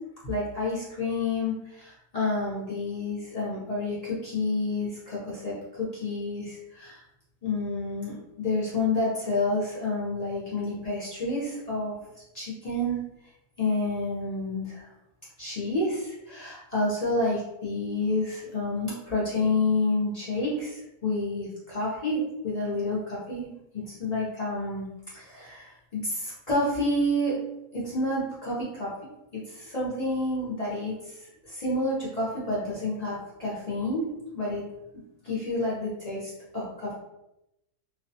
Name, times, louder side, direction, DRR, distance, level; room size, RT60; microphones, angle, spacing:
voice 1, 0.2-7.0 7.4-12.0 12.3-13.0 13.6-14.9 15.4-24.9 25.1-27.4 27.7-28.9 29.3-34.1 34.3-34.6 35.2-36.9, left 2 dB, 50° left, -8 dB, 0.4 m, -29 dB
2.5 x 2.2 x 2.7 m, 0.88 s
omnidirectional pair, 1.6 m